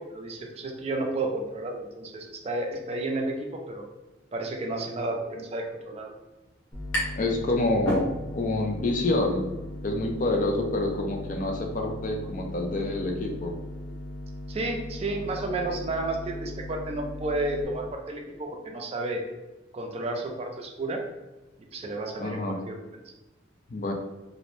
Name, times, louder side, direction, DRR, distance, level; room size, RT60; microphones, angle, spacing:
voice 1, 0.0-3.9 4.3-6.1 14.5-19.2 19.7-21.0 21.6-22.8, right 2 dB, 35° right, 2 dB, 0.4 m, -32 dB
sound 1, 6.4-7.3 7.7-8.6, equal, 90° left, 0.9 m, -31 dB
sound 2, 6.7-17.6, left 1 dB, 10° left, 0.7 m, -39 dB
voice 2, 7.2-8.1 8.3-9.4 9.8-13.5 22.2-22.6 23.7-23.9, left 2 dB, 45° left, 2 dB, 0.4 m, -27 dB
2.5 x 2.0 x 3.1 m, 1.1 s
head